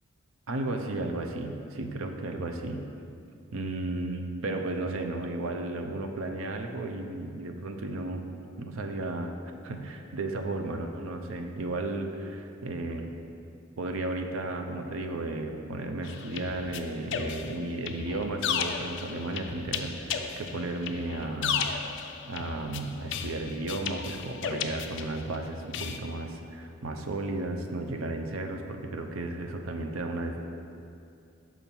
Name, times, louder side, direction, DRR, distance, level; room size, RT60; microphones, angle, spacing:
voice 1, 0.5-2.8 3.5-8.3 8.6-9.3 9.6-13.1 13.8-21.6 22.3-30.4, right 2 dB, 90° right, 4 dB, 0.6 m, -34 dB
sound 1, 16.0-25.4 25.7-26.0, left 7 dB, 60° left, 0.4 m, -34 dB
6.0 x 4.4 x 5.4 m, 2.5 s
head